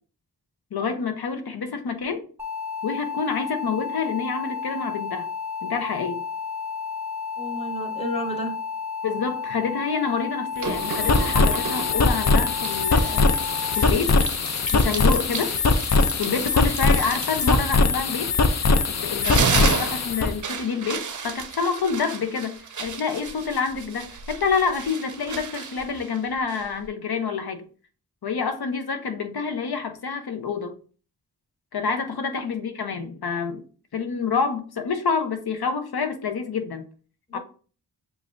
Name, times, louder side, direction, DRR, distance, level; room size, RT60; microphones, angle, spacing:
voice 1, 0.7-2.2 2.8-5.3 5.6-6.2 9.0-13.3 13.7-14.2 14.7-15.6 16.2-18.4 18.9-27.6 28.2-30.8 31.7-33.6 33.9-36.8 37.3-37.4, left 5 dB, 60° left, 0.8 m, -27 dB
sound 1, 2.4-13.8, left 5 dB, 5° right, 0.8 m, -32 dB
voice 2, 7.4-8.5 32.2-32.3 37.3-37.4, equal, 15° left, 1.2 m, -32 dB
sound 2, 10.6-20.3, left 3 dB, 40° left, 0.5 m, -21 dB
sound 3, 10.6-12.1 12.6-18.7 19.0-26.9, right 6 dB, 45° right, 0.6 m, -33 dB
7.0 x 2.4 x 2.5 m
wide cardioid pair, 65°, 41 cm